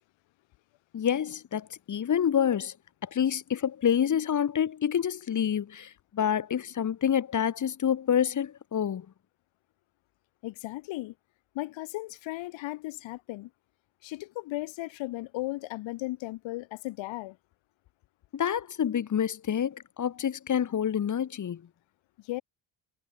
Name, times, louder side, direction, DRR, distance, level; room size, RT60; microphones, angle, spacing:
voice 1, 0.9-2.7 3.0-9.1 18.3-21.6, left 8 dB, 40° left, 1.9 m, -27 dB
voice 2, 10.4-11.1 11.5-13.5 14.0-17.4 22.2-22.4, left 18 dB, 80° left, 2.9 m, -36 dB
cardioid pair, 90°, 45 cm